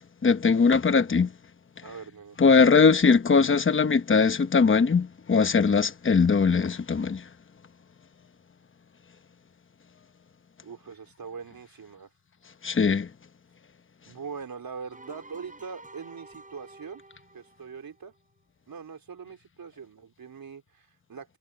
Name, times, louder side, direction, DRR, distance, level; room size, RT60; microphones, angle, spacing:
voice 1, 0.2-1.3 2.4-7.2 12.6-13.1, left 5 dB, 30° left, 0.9 m, -20 dB
voice 2, 1.8-2.4 10.6-12.1 14.1-17.0 17.3-18.1 18.7-21.4, right 5 dB, 55° right, 3.8 m, -42 dB
sound 1, 14.9-18.2, right 2 dB, 20° right, 5.8 m, -50 dB
wide cardioid pair, 165°, 41 cm